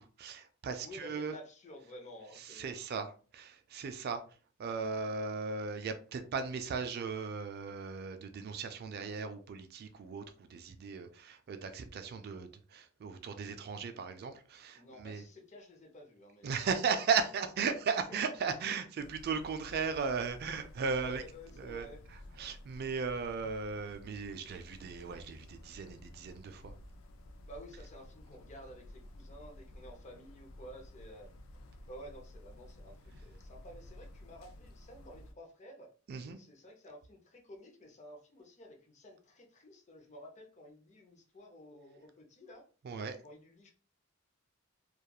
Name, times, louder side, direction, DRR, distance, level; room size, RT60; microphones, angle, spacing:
voice 1, 0.0-1.3 2.5-3.1 3.3-4.2 4.6-15.2 16.4-21.2 21.6-21.9 22.4-26.7 36.1-36.4 42.8-43.2, right 5 dB, 50° right, 8 dB, 0.3 m, -36 dB
voice 2, 0.8-2.8 14.7-16.7 17.7-17.8 18.1-18.2 20.4-20.5 21.0-22.0 27.5-31.3 31.9-35.9 36.3-42.6 43.2-43.7, equal, 35° left, 1 dB, 0.6 m, -52 dB
sound 1, 19.0-35.3, left 1 dB, 75° left, 0.4 m, -53 dB
2.9 x 2.3 x 2.2 m, 0.39 s
head